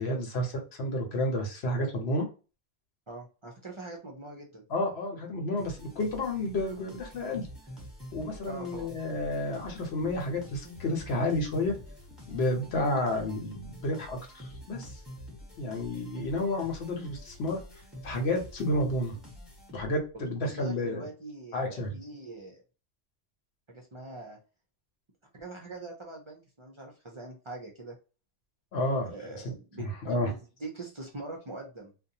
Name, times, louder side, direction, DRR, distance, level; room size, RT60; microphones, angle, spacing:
voice 1, 0.0-2.3 4.7-7.5 8.1-11.8 12.3-14.9 15.6-17.6 18.0-19.2 19.7-21.0 21.5-21.9 28.7-30.3, left 1 dB, 85° left, 2 dB, 1.1 m, -31 dB
voice 2, 3.1-4.6 8.4-8.9 20.4-22.6 23.7-24.4 25.3-28.0 29.1-29.9 30.3-30.4 30.6-31.9, right 2 dB, 40° right, 1 dB, 0.5 m, -43 dB
sound 1, 5.6-20.1, equal, ahead, 0.9 m, -47 dB
2.5 x 2.2 x 2.7 m, 0.33 s
omnidirectional pair, 1.1 m